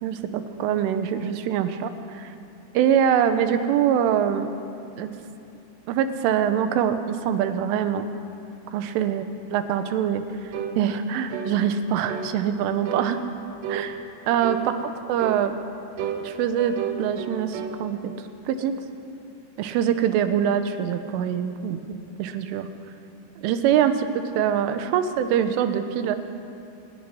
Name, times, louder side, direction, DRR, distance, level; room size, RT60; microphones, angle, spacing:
voice 1, 0.0-2.3 2.8-4.5 5.0-5.1 5.9-8.0 8.7-9.2 9.5-10.2 10.8-13.2 13.7-14.0 14.3-14.8 15.1-15.6 16.2-18.1 18.5-18.8 19.6-21.8 22.2-22.7 23.4-24.1 24.4-26.2, right 9 dB, 90° right, 9 dB, 3.6 m, -24 dB
sound 1, 10.5-10.8 11.3-11.6 12.1-12.3 12.9-13.1 13.6-13.9 14.4-14.7 15.2-15.4 16.0-17.8, right 8 dB, 70° right, 3.2 m, -31 dB
26.0 x 10.5 x 9.9 m, 2.8 s
omnidirectional pair, 5.5 m